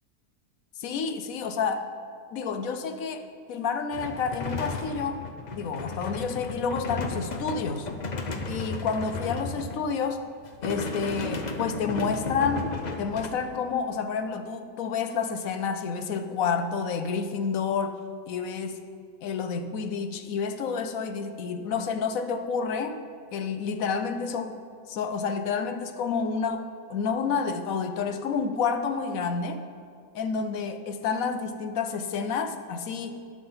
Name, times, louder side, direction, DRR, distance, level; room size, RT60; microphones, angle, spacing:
voice 1, 0.8-1.9 2.3-3.2 3.5-5.2 5.5-7.9 8.5-10.2 10.6-12.7 13.0-17.9 18.3-18.8 19.2-23.0 23.3-24.6 24.9-29.6 30.1-33.2, left 5 dB, 65° left, 7 dB, 1.0 m, -29 dB
sound 1, 3.9-10.0 10.4-13.3, left 3 dB, 45° left, 0.5 m, -34 dB
18.5 x 6.2 x 3.9 m, 2.3 s
omnidirectional pair, 1.7 m